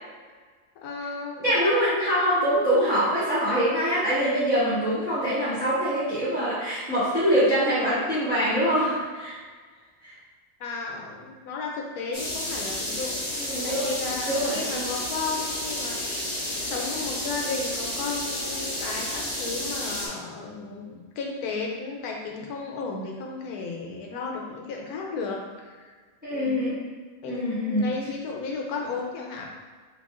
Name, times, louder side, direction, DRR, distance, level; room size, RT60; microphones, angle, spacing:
voice 1, 0.8-1.7 10.6-13.2 13.5-25.9 26.3-26.6 27.2-29.5, left 4 dB, 85° left, 0 dB, 1.1 m, -34 dB
voice 2, 1.4-9.4 10.0-10.2 13.3-14.0 14.3-14.9 26.2-26.7 27.2-27.9, equal, 10° right, -13 dB, 0.7 m, -24 dB
sound 1, 12.1-20.1, left 1 dB, 30° left, 0.5 m, -31 dB
3.5 x 2.3 x 3.6 m, 1.5 s
omnidirectional pair, 1.6 m